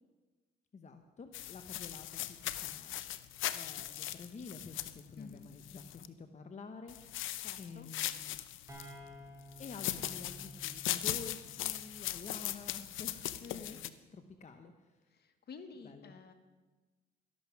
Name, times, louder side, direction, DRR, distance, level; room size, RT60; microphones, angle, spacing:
voice 1, 0.7-3.0 3.5-7.3 7.6-8.4 9.6-13.3 13.7-15.0 15.8-16.1, left 4 dB, 35° left, 7 dB, 1.0 m, -50 dB
sound 1, 1.3-6.1 6.9-8.9 9.5-13.9, left 13 dB, 80° left, 0.6 m, -39 dB
voice 2, 5.2-5.5 7.4-7.9 13.4-13.8 15.1-16.3, left 5 dB, 55° left, 8 dB, 1.4 m, -50 dB
sound 2, 8.7-12.3, right 1 dB, 15° right, 4.6 m, -53 dB
12.5 x 11.5 x 5.9 m, 1.2 s
cardioid pair, 90°, 20 cm